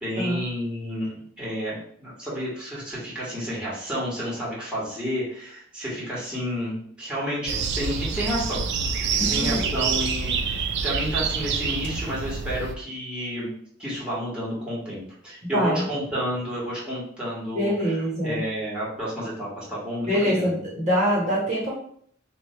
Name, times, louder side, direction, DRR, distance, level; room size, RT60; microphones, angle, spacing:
voice 1, 0.0-8.7 9.1-13.5 13.8-20.5, equal, 5° right, -8 dB, 1.5 m, -31 dB
sound 1, 7.5-12.8, right 5 dB, 55° right, 0.4 m, -27 dB
voice 2, 9.2-9.6 15.4-15.9 17.5-18.4 20.1-21.7, equal, 35° right, -7 dB, 1.2 m, -24 dB
3.1 x 2.5 x 4.3 m, 0.62 s
head